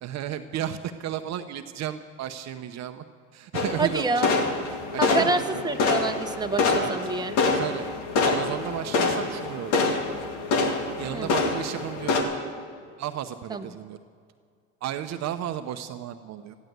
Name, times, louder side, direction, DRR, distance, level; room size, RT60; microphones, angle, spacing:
voice 1, 0.0-3.0 3.3-4.3 4.9-5.4 6.8-7.0 7.5-7.9 8.2-9.9 11.0-12.2 13.0-14.0 14.8-16.6, right 10 dB, 45° right, 9 dB, 0.8 m, -33 dB
sound 1, 3.5-12.2, left 3 dB, 75° left, 2.2 m, -26 dB
voice 2, 3.8-4.3 5.0-7.4 11.1-11.3 13.5-13.6, right 3 dB, 10° right, 6 dB, 1.0 m, -27 dB
14.0 x 11.0 x 8.0 m, 2.2 s
hypercardioid pair, 85°, 37 cm